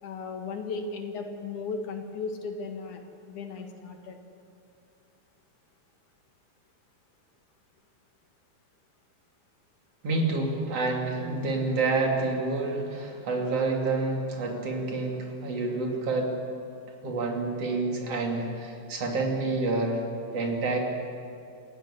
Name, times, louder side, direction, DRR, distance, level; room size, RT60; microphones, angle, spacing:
voice 1, 0.0-3.0 3.3-4.2, left 4 dB, 85° left, 4 dB, 3.3 m, -36 dB
voice 2, 10.0-16.3 17.0-20.0 20.3-20.8, right 3 dB, 55° right, 0 dB, 3.7 m, -28 dB
28.0 x 15.5 x 6.9 m, 2.5 s
omnidirectional pair, 3.4 m